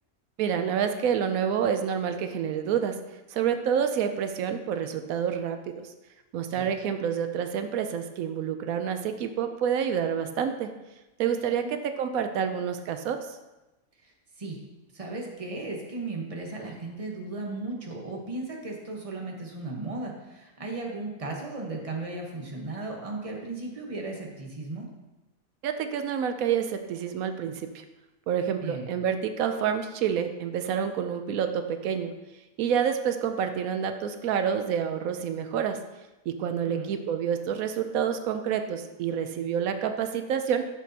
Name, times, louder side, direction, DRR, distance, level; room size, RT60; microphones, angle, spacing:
voice 1, 0.4-3.0 3.3-5.9 6.3-10.7 11.2-13.2 25.6-27.8 28.3-32.1 32.6-35.8 36.3-40.6, right 8 dB, 85° right, 8 dB, 1.0 m, -28 dB
voice 2, 11.4-11.8 14.0-14.1 14.4-14.6 14.9-24.9 28.6-28.9 36.5-36.9, right 2 dB, 25° right, 0 dB, 1.2 m, -36 dB
11.5 x 6.3 x 2.8 m, 1.1 s
omnidirectional pair, 1.4 m